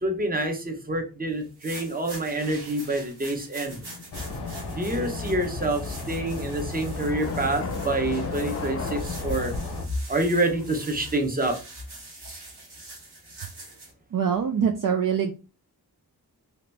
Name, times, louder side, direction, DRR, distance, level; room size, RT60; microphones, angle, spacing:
voice 1, 0.0-3.8 4.7-9.5 10.1-11.6, right 2 dB, 20° right, 3 dB, 0.8 m, -27 dB
sound 1, 1.4-13.9, right 2 dB, 90° right, 1.3 m, -45 dB
sound 2, 3.6-5.7 7.0-9.6 10.1-11.2, left 4 dB, 35° left, 0.6 m, -39 dB
sound 3, 4.1-9.9, left 3 dB, 80° left, 0.7 m, -33 dB
voice 2, 14.1-15.3, right 7 dB, 55° right, 5 dB, 0.5 m, -24 dB
2.9 x 2.6 x 3.3 m, 0.32 s
wide cardioid pair, 80°, 39 cm